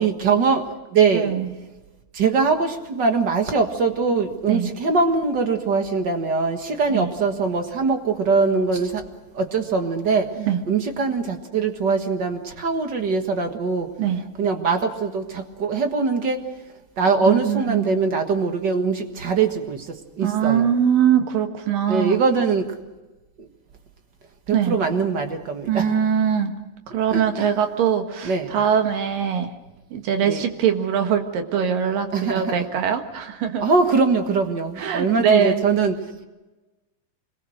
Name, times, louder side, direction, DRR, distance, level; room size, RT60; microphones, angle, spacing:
voice 1, 0.0-1.3 2.1-9.0 9.3-10.3 10.7-13.9 14.4-16.4 17.0-19.8 20.2-20.7 21.9-22.7 24.5-25.9 27.1-27.5 28.2-28.7 30.2-30.4 32.1-32.5 33.6-35.9, right 4 dB, 45° right, 5 dB, 1.6 m, -22 dB
voice 2, 1.1-1.5 4.5-4.7 6.9-7.1 10.4-10.6 14.0-14.2 17.3-17.9 20.2-22.2 24.5-24.8 25.7-26.5 26.9-29.5 29.9-33.6 34.8-35.6, right 8 dB, 80° right, 6 dB, 3.4 m, -22 dB
25.5 x 21.5 x 6.5 m, 1.1 s
omnidirectional pair, 3.8 m